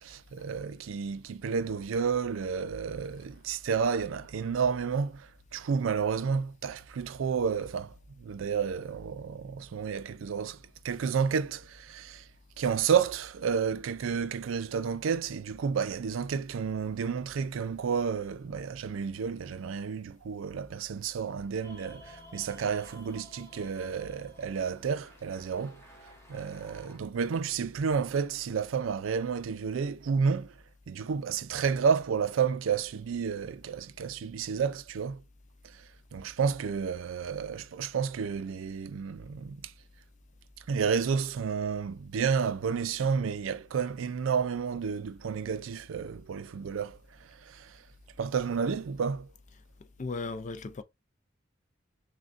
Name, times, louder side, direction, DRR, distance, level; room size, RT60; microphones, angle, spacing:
voice 1, 0.0-12.3 12.6-25.8 26.3-30.6 30.9-35.2 35.6-39.7 40.6-47.8 48.2-49.3, right 6 dB, 80° right, 0.4 m, -31 dB
sound 1, 21.6-27.0, left 1 dB, 15° left, 1.0 m, -53 dB
voice 2, 50.0-50.8, left 3 dB, 40° left, 0.4 m, -36 dB
6.0 x 2.2 x 2.5 m
head